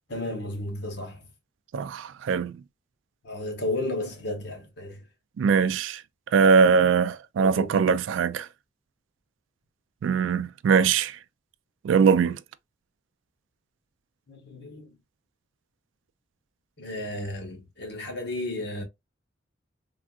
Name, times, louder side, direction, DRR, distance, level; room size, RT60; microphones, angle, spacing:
voice 1, 0.1-1.3 3.2-5.0 7.4-7.8 14.3-15.0 16.8-18.8, left 1 dB, 60° left, 1.1 m, -33 dB
voice 2, 1.7-2.6 5.4-6.0 6.3-8.5 10.0-11.2 11.8-12.4, right 6 dB, 85° right, 0.3 m, -21 dB
3.6 x 2.3 x 2.3 m
head